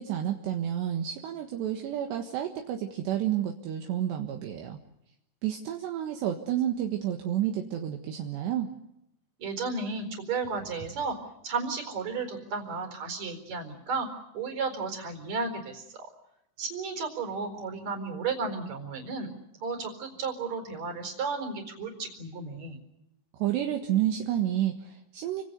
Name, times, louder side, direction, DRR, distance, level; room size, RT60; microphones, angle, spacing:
voice 1, 0.0-4.8 5.4-8.7 23.4-25.4, right 11 dB, 70° right, 3 dB, 3.6 m, -30 dB
voice 2, 9.4-11.2 11.4-14.1 14.3-16.1 16.6-19.3 19.6-22.8, right 4 dB, 40° right, 7 dB, 5.4 m, -33 dB
29.5 x 26.0 x 6.8 m, 0.83 s
omnidirectional pair, 5.4 m